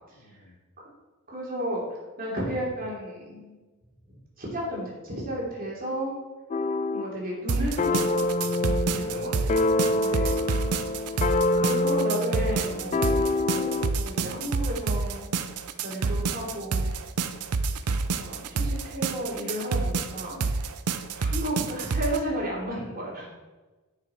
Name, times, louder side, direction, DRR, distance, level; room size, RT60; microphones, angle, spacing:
voice 1, 0.1-0.6 8.8-10.2 11.1-11.8, left 1 dB, 65° left, 5 dB, 1.2 m, -48 dB
voice 2, 1.3-1.8 2.2-3.6 4.1-6.1 6.9-9.6 9.9-10.5 11.1-15.5 15.8-16.9 18.1-20.4 21.1-23.3, equal, 40° right, -4 dB, 3.1 m, -33 dB
sound 1, 6.5-7.1 7.8-14.0, left 2 dB, 30° left, 0.3 m, -26 dB
sound 2, 7.5-22.2, right 4 dB, 85° right, 0.6 m, -28 dB
9.6 x 6.7 x 4.5 m, 1.2 s
head